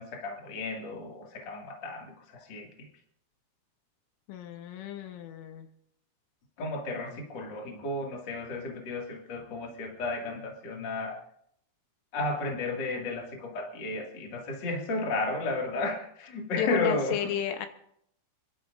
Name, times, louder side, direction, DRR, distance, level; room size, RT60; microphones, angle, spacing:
voice 1, 0.0-2.9 6.6-11.2 12.1-17.3, left 2 dB, 45° left, 0 dB, 1.5 m, -33 dB
voice 2, 4.3-5.7 16.6-17.7, left 9 dB, 85° left, 7 dB, 3.5 m, -33 dB
30.0 x 11.5 x 2.6 m, 0.71 s
omnidirectional pair, 5.7 m